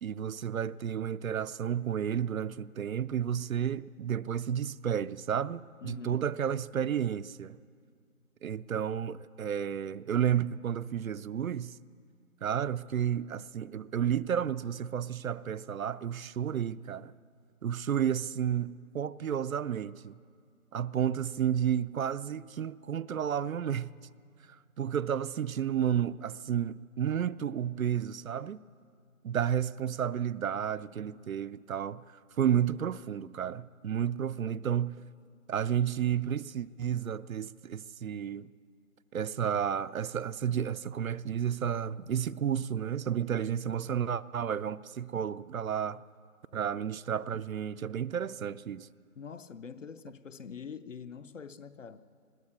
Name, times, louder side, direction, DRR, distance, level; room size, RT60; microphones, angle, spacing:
voice 1, 0.0-7.6 8.4-11.8 12.4-17.1 17.6-20.2 20.7-23.9 24.8-28.6 29.2-35.0 35.5-38.5 39.1-46.0 46.5-48.9, right 9 dB, 70° right, 0.6 m, -31 dB
voice 2, 5.8-6.3 49.1-52.0, left 6 dB, 60° left, 0.8 m, -44 dB
21.5 x 14.5 x 8.4 m
hypercardioid pair, 180°, 43 cm